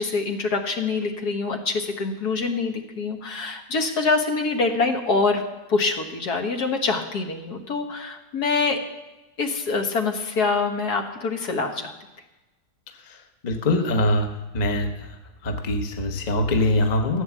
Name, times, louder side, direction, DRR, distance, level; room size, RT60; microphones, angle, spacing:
voice 1, 0.0-5.4 5.7-8.8 9.4-11.9, left 4 dB, 70° left, 4 dB, 1.8 m, -25 dB
voice 2, 13.4-14.3 14.5-15.2 15.4-17.2, left 1 dB, 30° left, 5 dB, 1.0 m, -23 dB
15.0 x 8.6 x 7.3 m, 1.0 s
omnidirectional pair, 1.8 m